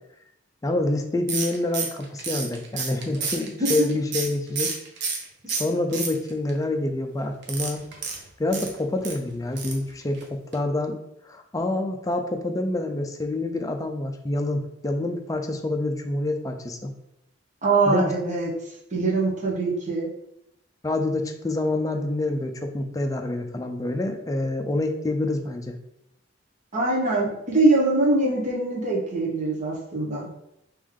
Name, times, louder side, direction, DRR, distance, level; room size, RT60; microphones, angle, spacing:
voice 1, 0.6-4.8 5.5-7.8 8.4-11.0 11.3-16.9 17.9-18.1 20.8-25.8, left 2 dB, 20° left, 5 dB, 0.4 m, -27 dB
sound 1, 1.3-5.2 5.5-6.5 7.4-9.2 9.6-9.9 10.1-10.2 10.5-10.6, right 5 dB, 65° right, 0.7 m, -30 dB
voice 2, 17.6-18.5 18.9-20.1 26.7-30.3, right 2 dB, 40° right, -4 dB, 1.2 m, -23 dB
3.4 x 3.1 x 3.6 m, 0.80 s
head